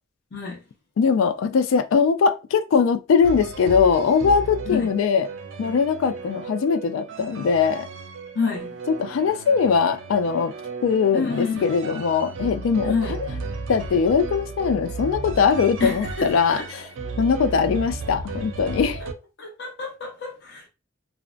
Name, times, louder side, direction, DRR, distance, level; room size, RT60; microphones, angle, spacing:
voice 1, 0.3-0.6 4.6-4.9 8.3-8.8 11.1-11.7 12.8-13.2 15.8-16.7 19.0-19.1 19.4-20.7, left 5 dB, 60° left, 0.7 m, -28 dB
voice 2, 1.0-5.3 5.6-7.9 9.0-10.5 10.8-12.9 13.2-13.3 13.7-16.8 17.2-19.0, left 6 dB, 80° left, 0.3 m, -21 dB
sound 1, 3.2-19.1, right 3 dB, 65° right, 0.4 m, -35 dB
2.5 x 2.1 x 2.3 m
head